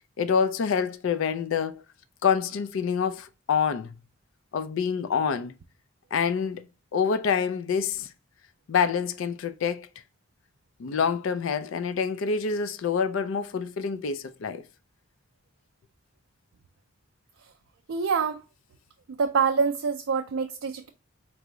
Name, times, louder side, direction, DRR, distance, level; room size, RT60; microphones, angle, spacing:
voice 1, 0.2-1.8 2.2-3.9 4.5-5.5 6.1-6.7 6.9-8.1 8.7-9.9 10.8-14.6, left 6 dB, 70° left, 0.4 m, -26 dB
voice 2, 17.9-18.4 19.1-20.9, right 5 dB, 65° right, 0.4 m, -26 dB
4.5 x 2.0 x 3.7 m
head